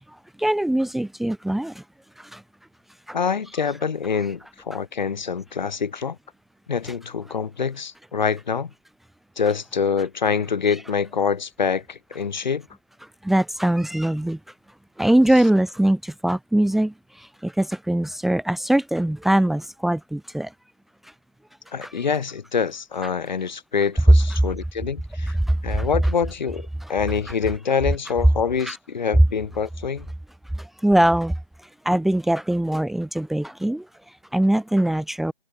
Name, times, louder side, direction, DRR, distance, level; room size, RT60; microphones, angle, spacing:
voice 1, 0.1-1.8 2.2-2.4 3.1-3.2 6.8-6.9 13.0-14.4 15.0-20.5 21.0-21.1 21.8-22.0 24.3-24.4 25.3-25.9 26.8-26.9 27.3-27.4 28.6-28.8 30.5-35.3, right 1 dB, ahead, 2.3 m, -23 dB
voice 2, 3.1-6.2 6.7-8.7 9.4-12.7 21.7-25.3 25.6-30.1, left 6 dB, 50° left, 5.4 m, -25 dB
figure-of-eight pair, 160°, 29 cm